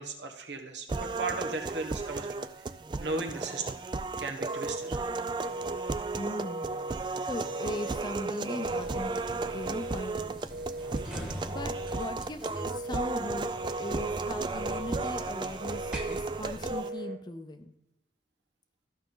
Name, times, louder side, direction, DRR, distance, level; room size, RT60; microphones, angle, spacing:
voice 1, 0.0-2.7 3.0-3.8 4.2-5.0 10.9-11.2, right 3 dB, 90° right, 4 dB, 1.3 m, -36 dB
sound 1, 0.9-16.9, right 3 dB, 25° right, 0.3 m, -34 dB
Telephone, 4.4-5.0 5.4-6.0 6.4-7.0 7.4-8.0 8.5-9.0 9.5-10.1 10.5-11.1 11.5-12.1 12.5-13.1 13.6-14.1 14.6-15.2 15.6-16.2 16.6-17.2, right 2 dB, 65° right, 0.8 m, -39 dB
voice 2, 6.2-6.8 7.2-9.1 9.5-10.5 11.5-17.7, left 1 dB, 25° left, 8 dB, 0.6 m, -39 dB
sound 2, 8.6-16.8, equal, 5° right, 1.2 m, -44 dB
13.5 x 5.8 x 3.8 m, 0.91 s
head